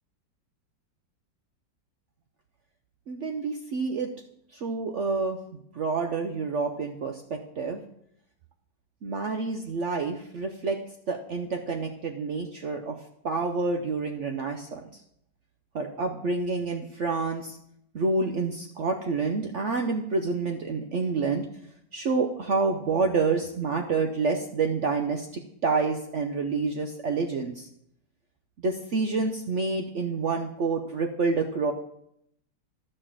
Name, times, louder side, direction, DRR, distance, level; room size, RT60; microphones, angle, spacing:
voice 1, 3.1-4.1 4.5-5.4 5.7-7.8 9.0-10.8 11.1-13.0 13.2-14.8 15.7-17.6 17.9-21.5 21.9-27.7 28.6-31.7, right 4 dB, 65° right, 3 dB, 0.7 m, -28 dB
11.5 x 4.3 x 7.4 m, 0.75 s
omnidirectional pair, 2.0 m